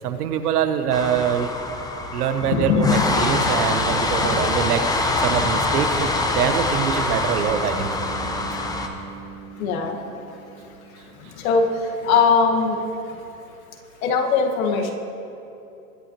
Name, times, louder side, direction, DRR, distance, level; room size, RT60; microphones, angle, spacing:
voice 1, 0.0-1.5 2.1-8.1, right 8 dB, 70° right, 9 dB, 1.1 m, -24 dB
sound 1, 0.9-8.9, left 2 dB, 10° left, 0.8 m, -24 dB
voice 2, 2.4-3.5 4.2-4.4 5.5-5.9 9.6-10.0 11.4-11.7 12.0-12.8 14.0-14.9, left 5 dB, 60° left, 2 dB, 1.7 m, -21 dB
Bass guitar, 7.4-11.5, right 6 dB, 45° right, 2.6 m, -40 dB
23.0 x 8.5 x 3.0 m, 2.9 s
hypercardioid pair, 125°, 47 cm